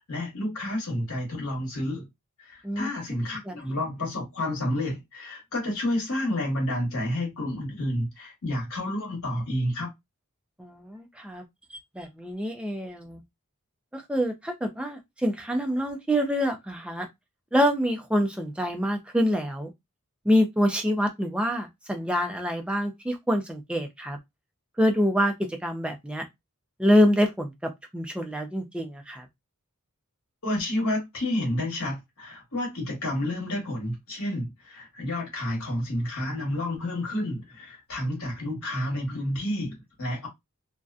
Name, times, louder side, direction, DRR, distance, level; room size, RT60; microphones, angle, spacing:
voice 1, 0.0-2.1 2.4-9.9 30.4-40.3, left 1 dB, 70° left, 1.2 m, -30 dB
voice 2, 10.6-11.4 11.9-13.2 13.9-17.1 17.5-19.7 20.2-24.2 24.8-25.3 25.6-26.2 26.8-29.3, equal, 5° right, 0.4 m, -26 dB
2.6 x 2.2 x 2.4 m
head